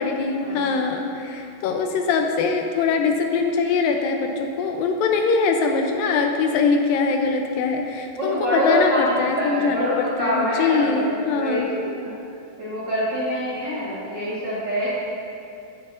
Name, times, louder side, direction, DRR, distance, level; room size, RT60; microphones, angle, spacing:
voice 1, 0.0-11.7, left 4 dB, 80° left, 4 dB, 2.3 m, -22 dB
voice 2, 8.2-12.1 12.6-14.9, equal, 50° right, -9 dB, 1.4 m, -25 dB
14.0 x 7.9 x 2.5 m, 2.6 s
omnidirectional pair, 4.2 m